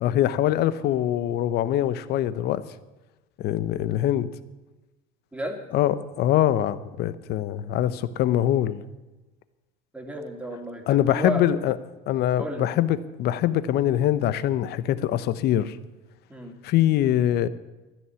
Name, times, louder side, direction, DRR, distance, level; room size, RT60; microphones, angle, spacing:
voice 1, 0.0-2.6 3.4-4.3 5.7-8.8 10.9-11.7 12.1-15.8 16.6-17.5, left 12 dB, 55° left, 15 dB, 0.8 m, -23 dB
voice 2, 9.9-11.4 12.4-12.7 16.3-16.6, equal, 5° right, 2 dB, 2.6 m, -32 dB
13.5 x 11.0 x 7.0 m, 1.1 s
cardioid pair, 120°, 20 cm